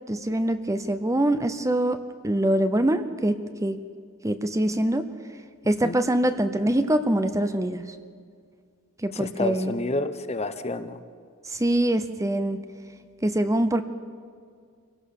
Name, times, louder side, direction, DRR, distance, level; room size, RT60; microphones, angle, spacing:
voice 1, 0.1-3.8 4.2-5.1 5.7-7.8 9.0-9.7 11.5-12.6 13.2-13.8, right 1 dB, 15° right, 10 dB, 0.7 m, -24 dB
voice 2, 9.1-11.0, left 2 dB, 30° left, 11 dB, 0.9 m, -29 dB
26.0 x 17.0 x 6.6 m, 2.2 s
head